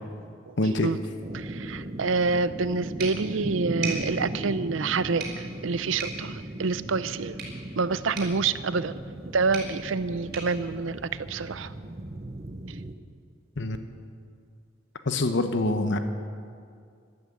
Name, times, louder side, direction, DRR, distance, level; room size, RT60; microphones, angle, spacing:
voice 1, 0.6-0.9 13.6-13.8 15.1-16.0, left 2 dB, 65° left, 8 dB, 0.9 m, -25 dB
sound 1, 1.2-12.9, right 1 dB, 35° right, 0.8 m, -37 dB
voice 2, 1.3-7.4 7.8-9.0 9.3-11.7 12.7-12.8, right 4 dB, 80° right, 15 dB, 0.6 m, -27 dB
sound 2, 3.0-11.7, right 4 dB, 55° right, 4.5 m, -41 dB
13.0 x 12.5 x 8.6 m, 2.3 s
head